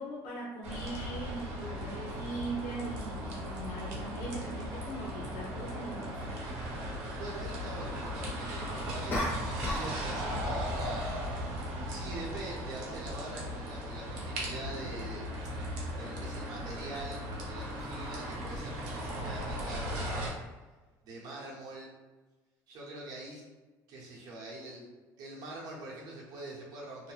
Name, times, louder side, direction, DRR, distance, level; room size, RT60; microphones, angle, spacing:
voice 1, 0.0-6.2, right 2 dB, 85° left, -4 dB, 0.7 m, -40 dB
sound 1, 0.6-20.3, equal, 90° right, 0.8 m, -37 dB
sound 2, 5.0-5.2 9.1-10.0 10.2-10.6, left 1 dB, 30° left, 0.7 m, -34 dB
voice 2, 7.2-11.2 11.9-15.3 16.0-20.3 21.0-21.9 22.7-23.4 23.9-27.1, right 2 dB, 55° right, -4 dB, 1.0 m, -44 dB
2.8 x 2.1 x 3.2 m, 1.2 s
cardioid pair, 150°, 8 cm